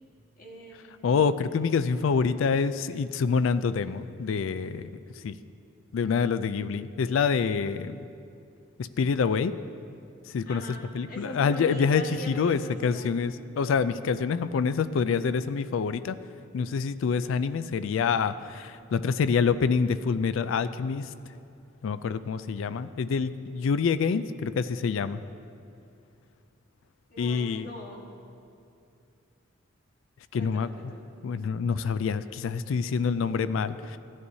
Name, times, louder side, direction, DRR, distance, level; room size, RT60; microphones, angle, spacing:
voice 1, 0.3-1.3 10.4-13.1 27.1-28.1 30.4-31.1, left 1 dB, 45° left, -3 dB, 1.7 m, -42 dB
voice 2, 1.0-4.9 5.2-5.4 5.9-8.1 8.8-9.5 10.3-10.6 10.9-16.2 16.5-21.0 21.8-25.2 27.2-27.7 30.3-30.9 31.2-34.0, left 5 dB, 80° left, 13 dB, 0.3 m, -26 dB
15.5 x 9.6 x 2.7 m, 2.5 s
head